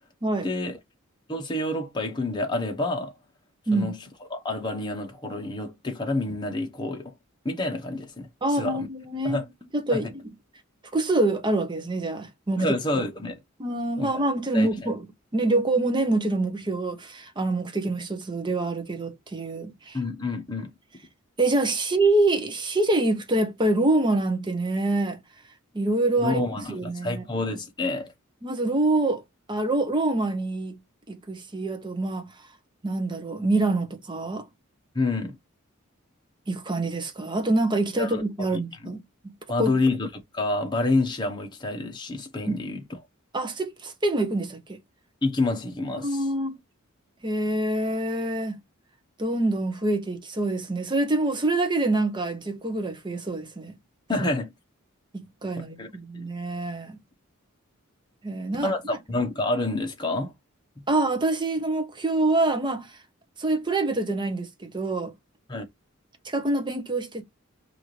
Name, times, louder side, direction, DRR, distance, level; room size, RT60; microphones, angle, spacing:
voice 1, 0.4-0.8 1.3-3.1 3.7-4.0 4.3-7.1 7.4-8.9 9.2-9.4 9.9-10.0 12.6-13.4 14.0-14.1 14.5-14.9 19.9-20.7 26.2-28.1 34.9-35.4 38.0-38.2 38.5-38.6 39.5-42.8 45.2-46.2 54.1-54.5 55.8-55.9 56.1-56.3 58.6-60.3 65.5-65.6, left 2 dB, 20° left, 0.9 m, -28 dB
voice 2, 8.4-9.4 9.7-10.3 10.9-12.6 13.6-15.0 15.3-20.0 21.4-25.2 25.7-27.2 28.4-29.2 29.5-30.8 31.3-32.3 32.8-34.5 36.5-39.3 39.6-39.7 42.5-42.6 43.3-44.8 46.0-46.6 47.2-48.6 49.2-53.7 55.1-57.0 58.2-59.0 60.9-63.0 63.4-65.1 66.2-67.2, right 2 dB, 20° right, 0.7 m, -26 dB
4.5 x 2.6 x 3.1 m
head